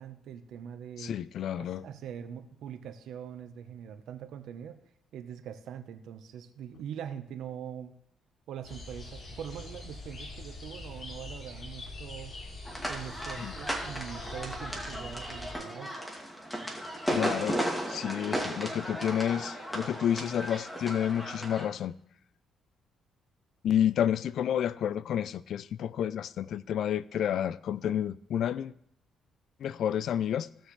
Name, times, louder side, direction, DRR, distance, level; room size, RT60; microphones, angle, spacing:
voice 1, 0.0-1.2 1.6-4.8 5.1-7.9 8.5-12.3 12.9-16.0, right 9 dB, 80° right, 1.0 m, -43 dB
voice 2, 1.0-1.8 13.4-13.5 17.1-17.6 17.9-21.9 23.6-28.7 29.6-30.5, left 9 dB, 70° left, 0.4 m, -30 dB
sound 1, 8.6-15.5, left 2 dB, 55° left, 3.0 m, -43 dB
sound 2, 12.6-21.7, equal, 5° left, 2.3 m, -35 dB
17.0 x 6.4 x 3.3 m
cardioid pair, 90°, 0 cm